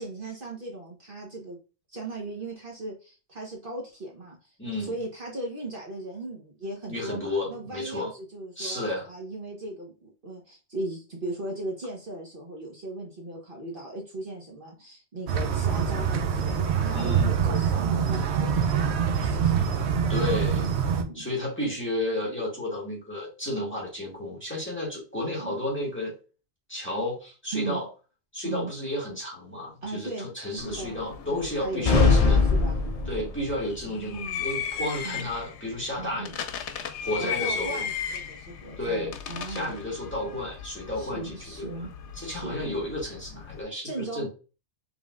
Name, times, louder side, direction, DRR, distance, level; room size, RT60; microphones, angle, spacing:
voice 1, 0.0-1.6 1.9-19.7 21.0-21.3 25.4-25.6 27.5-27.8 28.4-28.7 29.8-31.0 31.3-32.8 33.9-34.4 35.0-35.3 36.0-36.4 37.2-39.7 41.0-42.0 42.2-42.8 43.8-44.3, right 2 dB, 50° right, -1 dB, 1.4 m, -37 dB
voice 2, 4.6-4.9 6.9-8.1 8.6-9.1 16.9-17.3 20.1-20.7 21.1-26.1 26.7-27.9 28.3-32.4 33.1-36.3 37.0-37.8 38.8-39.1 39.4-41.9 42.2-44.3, left 1 dB, 10° left, -3 dB, 1.7 m, -32 dB
sound 1, 15.3-21.0, right 7 dB, 80° right, 0.9 m, -25 dB
sound 2, 30.6-43.6, left 7 dB, 90° left, 0.9 m, -37 dB
sound 3, 31.9-33.5, left 4 dB, 40° left, 0.6 m, -21 dB
5.3 x 3.4 x 2.5 m, 0.32 s
omnidirectional pair, 1.1 m